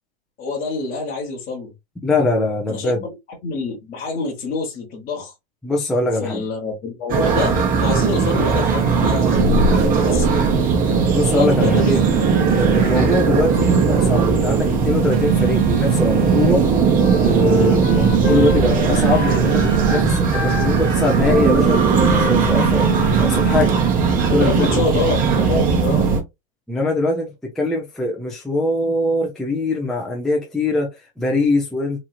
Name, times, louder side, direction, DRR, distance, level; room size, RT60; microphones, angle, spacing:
voice 1, 0.4-1.7 2.7-3.0 3.4-5.3 6.2-10.5 11.3-12.0 12.9-13.1 24.3-26.1, left 3 dB, 25° left, 1.0 m, -26 dB
voice 2, 2.0-3.0 5.6-6.4 11.1-11.9 12.6-16.6 17.2-21.9 22.2-23.8 24.1-24.8 26.7-32.0, left 2 dB, ahead, 0.4 m, -22 dB
sound 1, 7.1-26.2, right 5 dB, 25° right, 0.8 m, -18 dB
Telephone, 9.4-23.7, right 4 dB, 75° right, 0.7 m, -27 dB
Wind instrument woodwind instrument, 16.9-23.7, left 7 dB, 80° left, 1.1 m, -31 dB
3.1 x 2.7 x 2.3 m
supercardioid pair, 135°, 34 cm